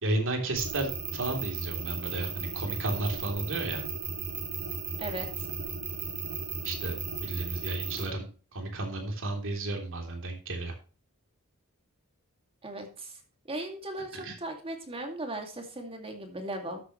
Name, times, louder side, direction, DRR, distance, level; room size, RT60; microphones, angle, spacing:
voice 1, 0.0-3.8 6.6-7.0 7.2-8.3 8.5-10.7 14.2-14.3, right 2 dB, 60° right, 3 dB, 3.3 m, -33 dB
sound 1, 0.6-8.0, right 5 dB, 45° right, 2.8 m, -35 dB
voice 2, 5.0-5.5 12.6-13.2 13.5-16.8, right 1 dB, 25° right, 4 dB, 2.3 m, -37 dB
13.5 x 8.1 x 3.1 m, 0.37 s
head